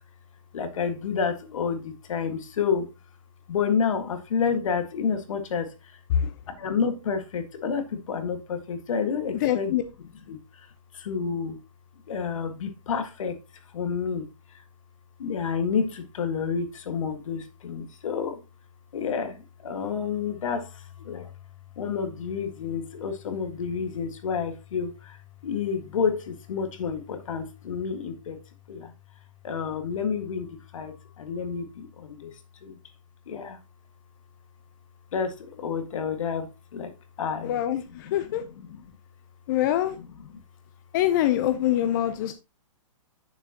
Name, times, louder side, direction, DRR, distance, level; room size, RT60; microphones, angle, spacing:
voice 1, 0.5-2.9 3.5-6.0 6.5-9.7 10.3-10.7 10.9-11.6 12.1-13.4 13.7-14.6 15.2-18.4 18.9-21.3 21.8-28.4 28.7-28.9 29.4-32.3 32.6-32.8 33.3-33.6 35.1-36.9 37.2-37.6 37.9-38.8 40.0-40.1 40.3-40.4, left 6 dB, 70° left, 1.8 m, -30 dB
voice 2, 9.4-9.8 37.4-38.4 39.5-40.0 40.9-42.3, left 11 dB, 35° left, 0.6 m, -24 dB
8.9 x 7.1 x 2.9 m
hypercardioid pair, 155°, 18 cm